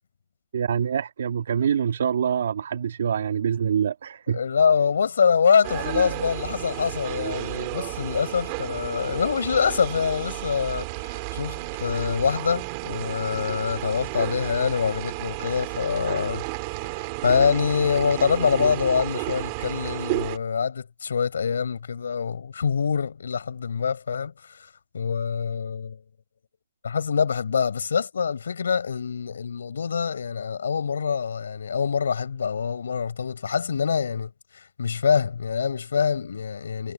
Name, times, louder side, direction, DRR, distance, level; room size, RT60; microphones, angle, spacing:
voice 1, 0.5-4.4, right 8 dB, 65° right, 2.3 m, -25 dB
voice 2, 4.3-16.4 17.0-24.7 24.9-26.0 26.8-36.9, left 6 dB, 80° left, 6.2 m, -25 dB
sound 1, 5.6-20.4, right 25 dB, 25° right, 1.9 m, -32 dB
hypercardioid pair, 170°, 0 cm